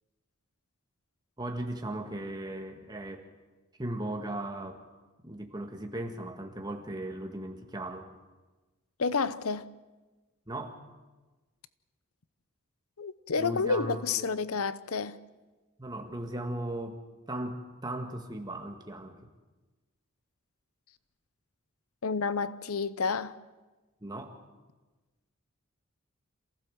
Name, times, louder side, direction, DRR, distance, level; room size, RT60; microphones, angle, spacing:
voice 1, 1.4-3.2 3.8-4.8 5.2-8.1 10.5-10.8 13.4-14.3 15.8-17.0 17.3-19.2 24.0-24.4, right 1 dB, 20° right, 1.8 m, -37 dB
voice 2, 9.0-9.7 13.0-15.2 22.0-23.3, left 4 dB, 80° left, 0.8 m, -30 dB
27.5 x 15.5 x 7.7 m
head